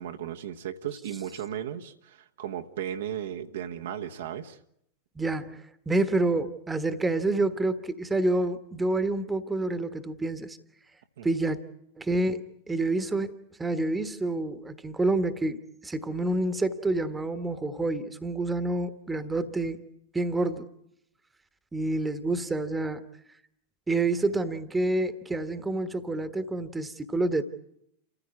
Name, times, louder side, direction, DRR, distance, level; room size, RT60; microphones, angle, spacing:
voice 1, 0.0-4.6 11.2-11.3, right 10 dB, 60° right, 1.2 m, -35 dB
voice 2, 5.1-10.6 11.2-11.6 12.0-13.3 13.6-19.8 20.1-20.7 21.7-23.0 23.9-27.4, right 2 dB, 10° right, 1.4 m, -28 dB
29.0 x 15.0 x 9.6 m
figure-of-eight pair, 90°, 0 cm